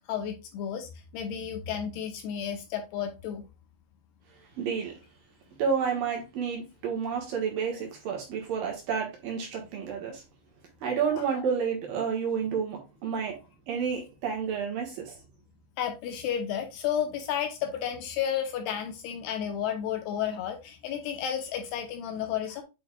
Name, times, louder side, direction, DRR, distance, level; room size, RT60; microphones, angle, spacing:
voice 1, 0.0-3.4 11.2-11.4 15.8-22.6, left 9 dB, 75° left, 2.6 m, -32 dB
voice 2, 4.6-5.0 5.6-10.2 10.8-13.4 13.7-15.2, right 6 dB, 65° right, 2.6 m, -30 dB
8.7 x 5.5 x 2.3 m
omnidirectional pair, 5.3 m